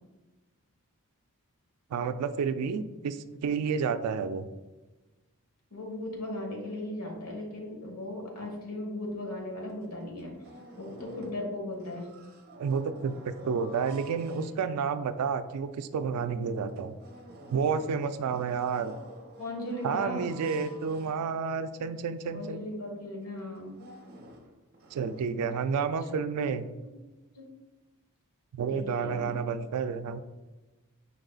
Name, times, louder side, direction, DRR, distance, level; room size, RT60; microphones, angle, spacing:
voice 1, 1.9-4.4 12.6-17.0 17.5-18.9 19.8-22.7 24.9-26.7 28.5-30.2, right 6 dB, 85° right, 12 dB, 0.3 m, -30 dB
voice 2, 5.7-10.3 10.8-12.1 19.4-20.3 22.2-23.8 26.1-26.5 27.3-27.5 28.7-29.3, left 1 dB, 80° left, 0 dB, 1.2 m, -37 dB
sound 1, 9.4-9.5 9.8-11.5 11.7-15.0 15.5-15.6 16.0-16.1 16.6-21.7 22.3-22.4 22.7-22.9 23.4-25.2, right 1 dB, 45° right, 0.6 m, -50 dB
5.3 x 3.8 x 2.4 m, 1.2 s
head